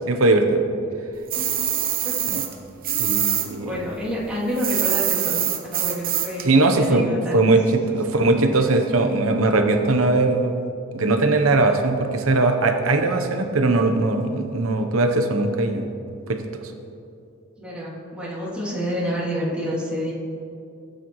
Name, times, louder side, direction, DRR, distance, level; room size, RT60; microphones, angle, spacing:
voice 1, 0.1-0.6 2.3-2.4 3.0-3.8 6.4-7.0 7.3-7.6 8.0-10.6 10.9-15.8 16.3-16.7, right 2 dB, 85° right, 5 dB, 0.9 m, -20 dB
voice 2, 1.3-1.7 2.0-2.3 2.9-3.1 3.6-5.4 5.7-7.6 7.9-8.3 17.6-20.1, equal, 5° right, -10 dB, 2.8 m, -29 dB
sound 1, 1.3-3.5 3.7-6.5, right 10 dB, 45° right, 1.0 m, -24 dB
16.0 x 9.1 x 3.1 m, 2.6 s
head